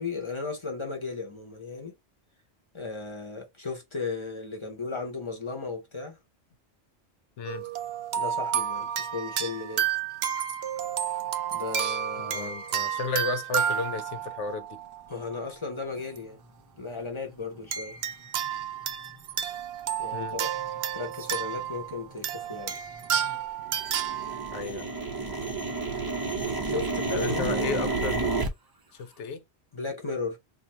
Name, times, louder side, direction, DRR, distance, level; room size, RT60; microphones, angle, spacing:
voice 1, 0.0-1.9 2.7-6.2 8.2-9.9 11.5-12.5 15.1-16.4 16.8-18.0 20.0-20.6 20.9-22.7 26.6-27.6 29.7-30.4, left 4 dB, 25° left, 1.0 m, -35 dB
voice 2, 7.4-7.7 12.2-14.8 20.1-20.4 24.5-24.9 27.2-28.2 29.0-29.4, left 4 dB, 80° left, 1.0 m, -33 dB
sound 1, 7.5-15.3 16.0-16.2 17.7-24.6, right 9 dB, 70° right, 0.8 m, -31 dB
sound 2, 17.6-17.7 18.4-18.5 19.1-19.4 19.9-20.0 20.2-20.8 21.0-23.4 23.7-28.5, right 3 dB, 25° right, 0.5 m, -31 dB
2.7 x 2.6 x 4.2 m
omnidirectional pair, 1.2 m